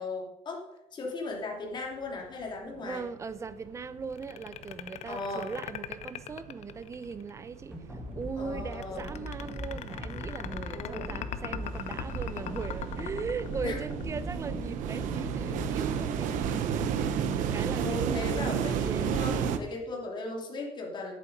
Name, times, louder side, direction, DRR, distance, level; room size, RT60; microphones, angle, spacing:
voice 1, 0.0-3.0 5.1-5.5 8.4-9.1 10.7-11.1 13.6-13.8 14.5-14.6 17.8-21.1, left 2 dB, 35° left, 2.7 m, -37 dB
voice 2, 2.7-19.1, right 5 dB, 25° right, 0.6 m, -39 dB
sound 1, 2.9-3.0 3.3-4.3 4.6-19.6, right 8 dB, 85° right, 1.0 m, -33 dB
sound 2, 4.1-7.3 8.7-14.2, left 11 dB, 60° left, 0.7 m, -40 dB
sound 3, 7.7-15.7, left 1 dB, 5° right, 1.9 m, -40 dB
10.0 x 8.6 x 5.3 m
cardioid pair, 145°, 13 cm